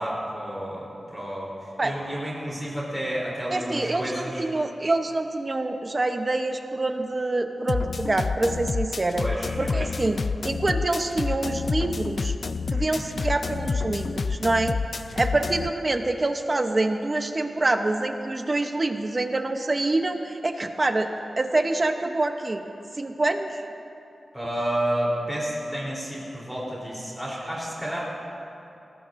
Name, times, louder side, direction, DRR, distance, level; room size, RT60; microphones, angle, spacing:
voice 1, 0.0-4.5 9.2-10.0 12.7-13.0 15.1-15.4 24.3-28.0, right 1 dB, 5° right, -6 dB, 3.4 m, -31 dB
voice 2, 3.5-9.2 9.6-10.2 10.4-12.3 12.7-14.8 15.2-21.1 21.4-22.6 23.0-23.6, right 2 dB, 30° right, 6 dB, 0.8 m, -26 dB
sound 1, 7.7-15.7, left 4 dB, 55° left, 0.3 m, -28 dB
21.0 x 17.5 x 2.6 m, 2.8 s
wide cardioid pair, 115°, 0 cm